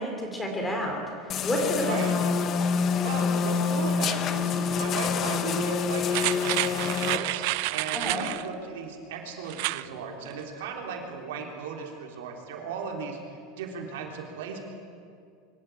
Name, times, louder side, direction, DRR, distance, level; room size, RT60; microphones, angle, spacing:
voice 1, 0.0-2.1 7.9-8.3, equal, 10° left, 1 dB, 3.3 m, -30 dB
sound 1, 1.3-7.2, left 6 dB, 30° left, 0.8 m, -27 dB
voice 2, 3.0-6.5 6.8-7.4 7.7-13.2 13.6-14.6, right 5 dB, 85° right, 2 dB, 3.5 m, -36 dB
sound 2, 6.1-8.5 9.5-9.9 10.3-10.4, right 19 dB, 60° right, 0.5 m, -29 dB
24.0 x 12.5 x 8.6 m, 2.3 s
supercardioid pair, 165°, 0 cm